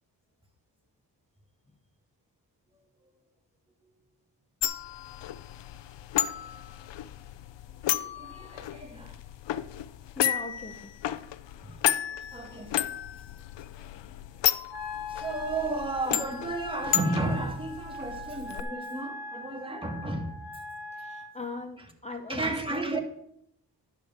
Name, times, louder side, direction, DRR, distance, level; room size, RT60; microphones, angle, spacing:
sound 1, 4.6-18.6, left 11 dB, 80° left, 0.6 m, -33 dB
voice 1, 7.8-9.2 11.6-11.8 12.3-12.8 15.1-20.4 22.3-23.0, right 2 dB, 10° right, 1.9 m, -33 dB
voice 2, 10.2-10.9 20.9-23.0, left 2 dB, 15° left, 0.8 m, -39 dB
Wind instrument woodwind instrument, 14.7-21.3, left 1 dB, 55° left, 3.9 m, -41 dB
11.0 x 5.0 x 7.3 m
cardioid pair, 75°, 42 cm